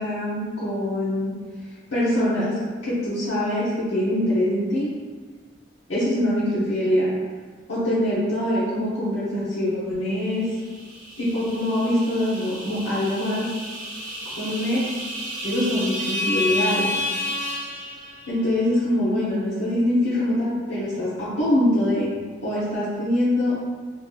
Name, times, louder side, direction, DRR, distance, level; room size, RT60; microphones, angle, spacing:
voice 1, 0.0-1.3 1.9-4.9 5.9-7.1 7.7-10.4 11.2-13.5 14.4-14.8 15.4-16.9 18.3-22.1 22.4-23.6, left 1 dB, 90° left, -10 dB, 0.9 m, -23 dB
sound 1, 10.5-18.5, left 1 dB, 45° right, 0.8 m, -31 dB
2.9 x 2.4 x 3.8 m, 1.5 s
head